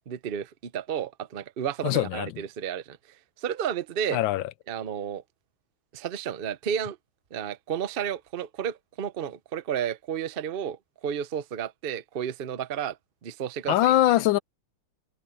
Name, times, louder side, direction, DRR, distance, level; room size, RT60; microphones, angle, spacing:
voice 1, 0.1-3.0 3.4-4.2 4.7-5.2 5.9-7.0 7.3-13.0 13.2-13.9, right 8 dB, 80° right, 0.5 m, -32 dB
voice 2, 1.8-2.3 4.1-4.4 13.7-14.4, left 14 dB, 80° left, 1.3 m, -22 dB
omnidirectional pair, 2.2 m